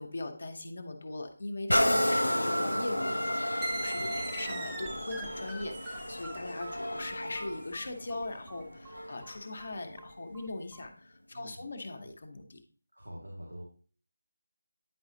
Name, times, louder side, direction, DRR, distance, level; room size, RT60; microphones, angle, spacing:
voice 1, 0.0-12.6, left 2 dB, 55° left, 4 dB, 1.0 m, -40 dB
sound 1, 1.7-9.3 9.9-10.0, equal, 90° left, 0.6 m, -32 dB
sound 2, 3.6-10.9, right 2 dB, 10° right, 0.6 m, -42 dB
voice 2, 4.0-4.3 11.3-11.7 12.9-13.6, equal, 90° right, -2 dB, 2.1 m, -46 dB
9.4 x 4.8 x 2.8 m, 0.41 s
figure-of-eight pair, 160°, 0 cm